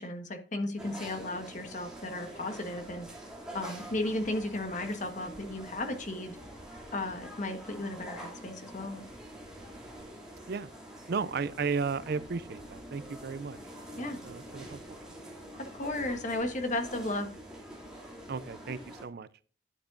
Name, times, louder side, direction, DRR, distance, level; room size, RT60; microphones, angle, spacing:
voice 1, 0.0-3.1 3.5-6.3 6.9-9.0 14.0-14.2 15.6-17.3, left 2 dB, 40° left, 1.4 m, -34 dB
sound 1, 0.8-19.0, right 1 dB, 5° right, 2.8 m, -46 dB
voice 2, 11.1-13.6 13.9-15.0 18.3-19.3, right 5 dB, 55° right, 0.4 m, -34 dB
12.0 x 8.1 x 2.6 m
head